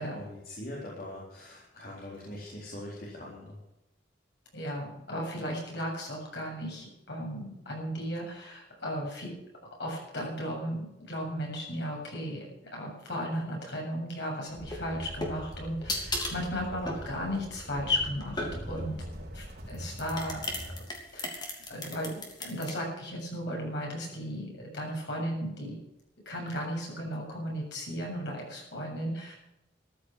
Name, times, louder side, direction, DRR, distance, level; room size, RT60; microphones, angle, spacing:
voice 1, 0.0-3.6 18.6-18.8, left 1 dB, 55° left, -5 dB, 4.0 m, -42 dB
voice 2, 4.5-9.3 9.8-12.5 12.7-18.9 19.3-20.4 20.7-20.8 21.1-25.8 26.3-29.4, equal, 70° left, -1 dB, 7.5 m, -35 dB
sound 1, 14.5-20.8, equal, 60° right, 4.0 m, -43 dB
sound 2, 14.6-18.9 19.7-22.7, left 1 dB, 25° left, 3.1 m, -36 dB
14.0 x 12.0 x 6.5 m, 0.89 s
head